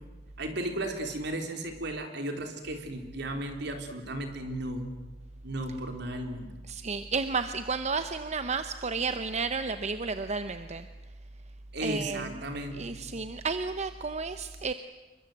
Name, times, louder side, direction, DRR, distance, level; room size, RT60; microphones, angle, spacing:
voice 1, 0.4-4.9 5.4-6.5 11.7-13.0, right 1 dB, 65° right, 5 dB, 4.0 m, -35 dB
voice 2, 6.7-10.9 11.8-12.4 12.7-14.7, right 4 dB, 40° right, 10 dB, 0.8 m, -32 dB
28.0 x 23.0 x 8.1 m, 1.2 s
head